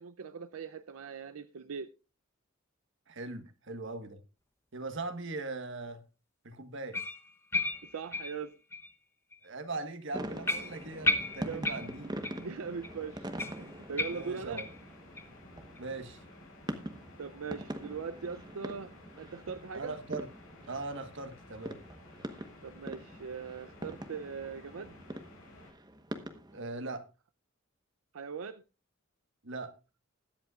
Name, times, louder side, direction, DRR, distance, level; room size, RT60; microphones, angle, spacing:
voice 1, 0.0-1.9 7.9-8.5 11.4-11.7 12.4-14.7 17.2-20.0 22.6-24.9 28.1-28.6, right 6 dB, 85° right, 0.5 m, -41 dB
voice 2, 3.1-4.2 4.7-6.0 6.4-7.0 9.4-12.1 14.1-14.7 15.8-16.2 19.7-20.3 20.7-21.8 26.5-27.1 29.4-29.7, right 3 dB, 60° right, 1.4 m, -40 dB
sound 1, 6.9-8.9 9.3-9.5 9.9-10.0 10.4-12.5 12.8-12.9 13.4-14.8 15.1-15.3 15.7-15.8 16.3-16.4, left 2 dB, 10° left, 0.8 m, -34 dB
sound 2, 10.1-25.7, left 2 dB, 70° left, 5.5 m, -55 dB
sound 3, 10.1-26.6, right 1 dB, 20° right, 1.1 m, -44 dB
20.5 x 8.1 x 2.4 m
head